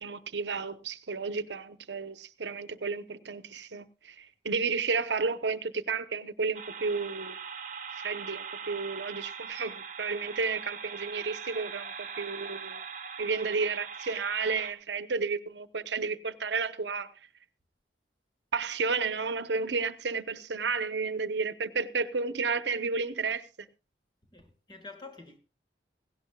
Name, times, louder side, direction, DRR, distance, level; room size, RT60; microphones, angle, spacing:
voice 1, 0.0-7.4 7.9-12.8 13.2-17.1 18.5-23.7, right 4 dB, 80° right, 0.9 m, -32 dB
sound 1, 6.5-14.7, right 6 dB, 45° right, 1.0 m, -41 dB
voice 2, 24.3-25.4, left 3 dB, 25° left, 1.8 m, -47 dB
17.0 x 17.0 x 2.3 m
head